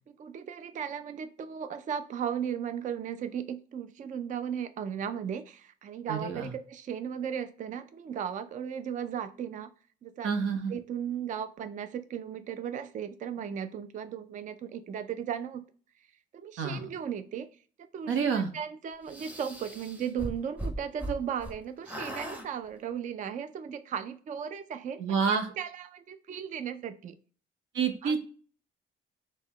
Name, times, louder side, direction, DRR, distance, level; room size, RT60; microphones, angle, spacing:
voice 1, 0.1-9.7 10.0-10.3 10.7-15.6 16.3-17.5 17.9-27.2 28.0-28.2, right 8 dB, 40° right, 11 dB, 0.4 m, -36 dB
voice 2, 6.1-6.4 10.2-10.7 16.6-16.9 18.1-18.5 25.0-25.5 27.7-28.2, right 6 dB, 85° right, 6 dB, 0.8 m, -28 dB
sound 1, 19.1-21.6 21.8-22.5, right 1 dB, 10° right, 0.8 m, -38 dB
5.4 x 2.1 x 3.0 m, 0.41 s
cardioid pair, 90°, 20 cm